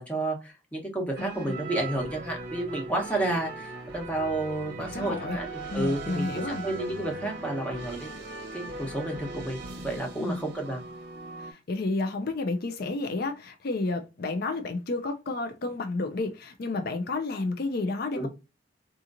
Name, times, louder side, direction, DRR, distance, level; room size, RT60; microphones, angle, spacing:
voice 1, 0.0-5.5 5.7-6.3 6.6-8.2 8.5-10.8 18.2-18.3, right 1 dB, 5° left, 1.0 m, -31 dB
voice 2, 1.2-1.5 4.8-5.4 5.7-6.7 10.2-10.4 11.4-18.3, left 3 dB, 50° left, 0.4 m, -31 dB
sound 1, 1.2-11.5, right 3 dB, 55° right, 0.8 m, -39 dB
3.7 x 2.9 x 2.5 m
head